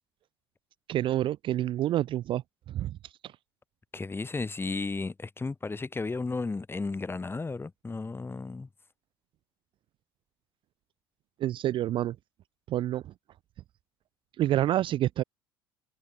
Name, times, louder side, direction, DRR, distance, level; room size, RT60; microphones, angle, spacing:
voice 1, 0.9-2.4 2.7-3.0 11.4-12.2 12.7-13.1 14.4-15.2, right 13 dB, 40° right, 0.4 m, -28 dB
voice 2, 3.9-8.7, left 3 dB, 20° left, 4.9 m, -34 dB
hypercardioid pair, 70°, 12 cm